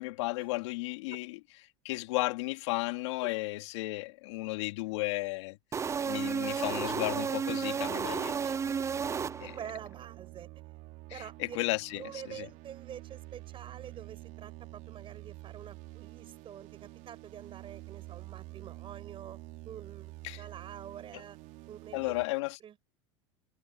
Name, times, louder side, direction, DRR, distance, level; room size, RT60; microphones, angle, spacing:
voice 1, 0.0-1.4 1.8-8.4 9.4-9.5 11.1-12.5 20.2-20.4 21.9-22.6, left 22 dB, 75° left, 2.5 m, -34 dB
sound 1, 5.7-9.8, right 6 dB, 20° right, 0.5 m, -32 dB
sound 2, 7.1-22.3, right 20 dB, 55° right, 4.2 m, -49 dB
voice 2, 8.4-8.9 9.4-10.5 11.1-11.6 11.9-19.4 19.6-21.4 21.7-22.2 22.6-22.8, right 9 dB, 35° right, 7.6 m, -47 dB
supercardioid pair, 105°, 15 cm